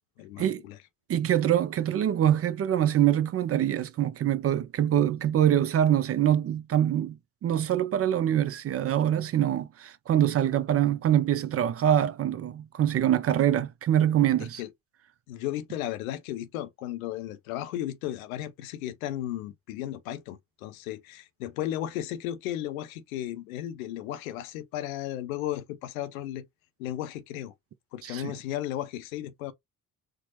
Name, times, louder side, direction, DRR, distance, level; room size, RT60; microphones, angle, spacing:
voice 1, 0.2-0.8 14.4-14.7 15.3-26.4 26.8-27.5 27.9-29.5, left 12 dB, 80° left, 0.6 m, -35 dB
voice 2, 1.1-7.2 7.4-14.6 28.0-28.3, right 10 dB, 35° right, 0.5 m, -24 dB
4.4 x 2.0 x 2.9 m
hypercardioid pair, 50°, 41 cm